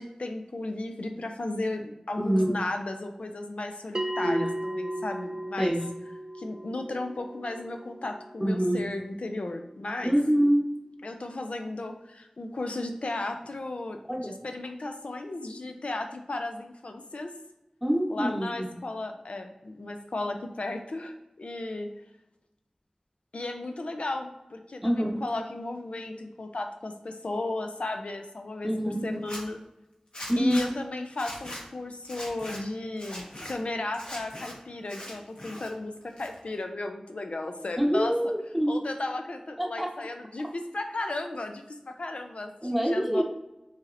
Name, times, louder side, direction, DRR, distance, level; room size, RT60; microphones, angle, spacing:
voice 1, 0.0-5.7 6.4-10.2 11.0-17.3 18.1-21.9 23.3-28.7 29.0-29.6 30.4-38.1 38.7-43.2, left 2 dB, 85° left, 5 dB, 0.4 m, -35 dB
voice 2, 2.2-2.5 4.2-4.5 5.6-5.8 8.4-8.8 10.0-10.6 14.1-14.4 17.8-18.7 24.8-25.2 28.6-29.2 30.3-30.6 37.8-38.8 39.6-39.9 42.6-43.2, equal, 5° right, 0 dB, 0.8 m, -25 dB
Bell, 3.9-9.0, right 1 dB, 40° right, 0.4 m, -36 dB
Zipper (clothing), 29.1-29.4 30.1-30.7 31.1-31.6 32.0-32.6 33.0-33.5 33.9-34.5 34.9-35.7 36.0-36.6, left 1 dB, 55° left, 1.2 m, -40 dB
6.0 x 2.8 x 2.5 m, 0.92 s
wide cardioid pair, 50°, 2 cm